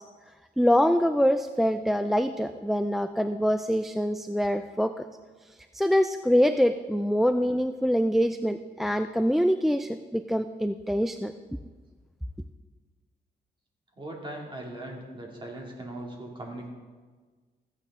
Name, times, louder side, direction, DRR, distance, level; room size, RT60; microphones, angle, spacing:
voice 1, 0.6-4.9 5.7-11.3, equal, ahead, 9 dB, 0.3 m, -24 dB
voice 2, 14.0-16.7, right 1 dB, 30° right, 0 dB, 2.4 m, -39 dB
15.5 x 8.6 x 3.6 m, 1.4 s
cardioid pair, 105°, 17 cm